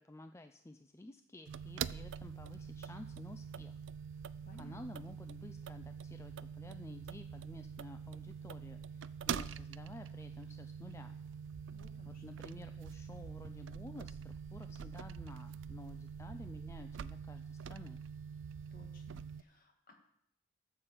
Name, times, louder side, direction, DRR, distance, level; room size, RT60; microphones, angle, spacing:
voice 1, 0.0-3.8 4.5-11.2 12.0-18.0, left 2 dB, 15° left, 8 dB, 0.4 m, -52 dB
sound 1, 1.5-19.4, right 7 dB, 75° right, 0.4 m, -45 dB
voice 2, 4.5-4.8 11.7-12.4 18.7-19.9, left 2 dB, 45° left, 3 dB, 1.8 m, -59 dB
9.8 x 6.9 x 7.1 m, 0.76 s
head